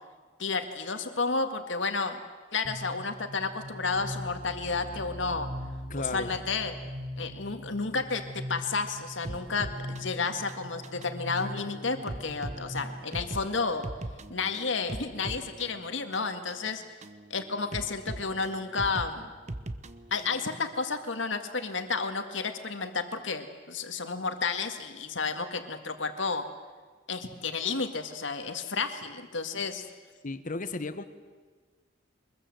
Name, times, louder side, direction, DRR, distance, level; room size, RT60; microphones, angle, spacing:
voice 1, 0.4-2.2 2.5-5.5 6.0-6.7 7.2-13.9 14.3-16.8 17.3-19.3 20.1-26.4 27.1-29.8, left 4 dB, 75° left, 7 dB, 2.0 m, -31 dB
sound 1, 2.6-12.8, equal, 70° right, 3.5 m, -41 dB
voice 2, 5.9-6.3 30.2-31.0, left 3 dB, 45° left, 11 dB, 1.2 m, -34 dB
sound 2, 9.2-20.5, right 2 dB, 40° right, 1.0 m, -41 dB
24.0 x 21.5 x 7.8 m, 1.4 s
head